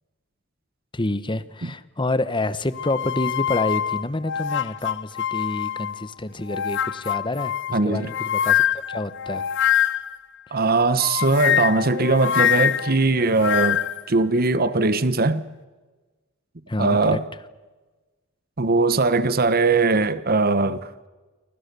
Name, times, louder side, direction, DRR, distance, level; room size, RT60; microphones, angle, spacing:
voice 1, 0.9-9.4 10.5-10.6 16.7-17.2, left 2 dB, 20° left, 1.1 m, -28 dB
sound 1, 2.7-6.0 6.5-10.2 11.0-14.0, left 10 dB, 55° left, 0.8 m, -24 dB
voice 2, 7.7-8.1 10.5-15.4 16.8-17.2 18.6-20.9, right 3 dB, 45° right, 1.1 m, -20 dB
29.5 x 25.0 x 6.9 m
head